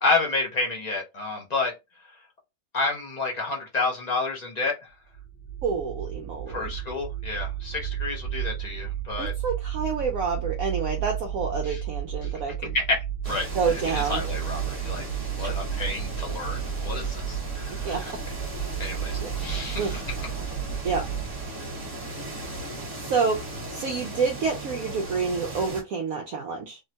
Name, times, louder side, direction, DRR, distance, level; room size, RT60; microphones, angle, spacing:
voice 1, 0.0-1.7 2.7-4.7 6.5-9.3 11.6-11.8 12.2-12.3 12.7-13.0 13.2-15.1 15.4-18.1 18.8-20.0, left 3 dB, 70° left, 0.4 m, -29 dB
sound 1, 5.1-21.5, right 10 dB, 55° left, 1.0 m, -33 dB
voice 2, 5.6-6.6 9.2-12.8 13.5-14.2 15.4-15.5 17.7-18.0 19.2-19.3 19.8-20.0 20.8-21.0 23.1-23.4 23.7-26.8, right 5 dB, 65° right, 0.9 m, -28 dB
sound 2, 13.2-25.8, right 2 dB, 35° right, 1.3 m, -37 dB
3.6 x 2.1 x 2.8 m
omnidirectional pair, 1.9 m